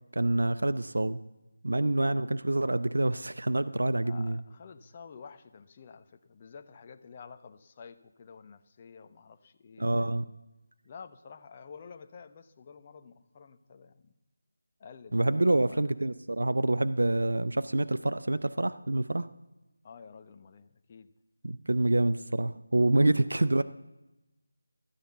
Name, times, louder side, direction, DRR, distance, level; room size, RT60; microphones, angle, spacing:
voice 1, 0.1-1.2 1.6-4.4 9.8-10.2 15.1-19.3 21.4-23.6, right 2 dB, 75° right, 14 dB, 0.7 m, -27 dB
voice 2, 4.0-10.3 10.8-14.1 14.8-15.9 19.8-21.1 23.0-23.6, left 5 dB, 25° left, 8 dB, 1.0 m, -50 dB
15.5 x 13.0 x 6.9 m, 0.99 s
figure-of-eight pair, 165°, 0 cm